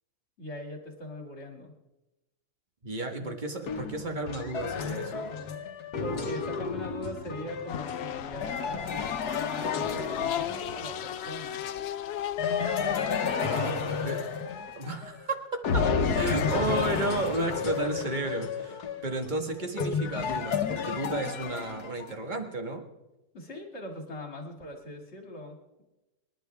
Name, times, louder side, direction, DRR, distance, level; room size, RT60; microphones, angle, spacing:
voice 1, 0.4-1.7 3.2-3.4 6.0-11.6 12.7-13.5 15.9-17.1 23.3-25.8, left 1 dB, 45° left, 2 dB, 2.7 m, -40 dB
voice 2, 2.8-5.3 13.4-14.2 14.8-15.4 15.7-15.8 16.1-22.8, right 2 dB, 30° right, 4 dB, 1.6 m, -33 dB
sound 1, 3.7-11.1 12.4-15.2 15.6-22.1, left 6 dB, 80° left, 1.6 m, -31 dB
sound 2, 7.7-15.6, left 10 dB, 65° left, 0.6 m, -36 dB
27.5 x 11.0 x 3.5 m, 1.0 s
omnidirectional pair, 1.6 m